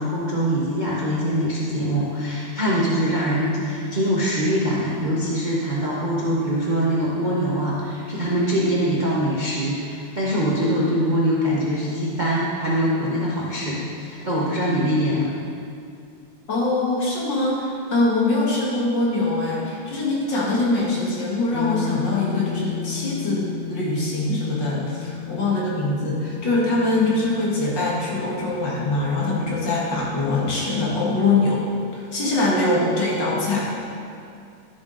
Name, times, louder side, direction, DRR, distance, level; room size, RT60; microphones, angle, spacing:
voice 1, 0.0-15.3, equal, 35° right, -6 dB, 0.8 m, -23 dB
voice 2, 16.5-31.6 31.9-33.7, left 2 dB, 55° left, -5 dB, 2.4 m, -23 dB
sound 1, 21.5-31.3, left 9 dB, 90° left, 1.6 m, -34 dB
11.5 x 7.2 x 4.0 m, 2.5 s
omnidirectional pair, 2.4 m